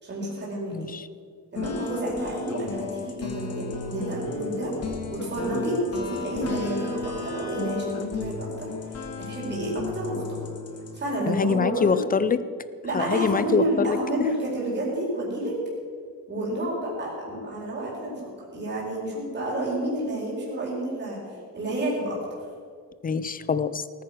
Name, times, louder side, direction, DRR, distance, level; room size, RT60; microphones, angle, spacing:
voice 1, 0.0-0.9 1.5-10.4 10.9-12.0 12.8-15.6 16.3-21.2 21.5-22.2, right 1 dB, 30° right, -4 dB, 4.3 m, -30 dB
voice 2, 0.7-1.1 11.3-12.4 12.9-14.3 23.0-23.8, left 5 dB, 25° left, 14 dB, 0.4 m, -25 dB
sound 1, 1.6-11.0, left 3 dB, 40° left, 1.8 m, -34 dB
18.5 x 9.5 x 6.2 m, 2.1 s
wide cardioid pair, 175°, 36 cm